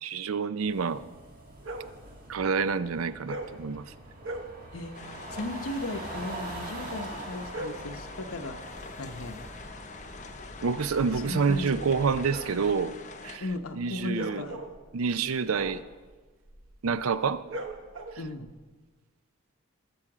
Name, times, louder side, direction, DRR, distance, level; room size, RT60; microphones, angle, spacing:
voice 1, 0.0-1.0 2.3-3.8 10.6-13.0 13.2-13.4 13.8-14.4 14.9-15.8 16.8-17.4, right 5 dB, 85° right, 14 dB, 0.5 m, -28 dB
sound 1, 0.6-12.2, right 1 dB, 45° right, 2.0 m, -43 dB
sound 2, 1.6-2.0 3.2-3.6 4.2-4.6 7.2-7.9 10.5-18.5, right 2 dB, 65° right, 1.1 m, -41 dB
voice 2, 4.7-5.0 5.3-8.6 9.0-9.4 11.1-11.8 13.4-14.6 18.2-18.5, left 2 dB, 90° left, 7 dB, 0.9 m, -36 dB
sound 3, 4.9-13.4, left 4 dB, 35° left, 1.0 m, -45 dB
20.5 x 7.0 x 4.9 m, 1.3 s
head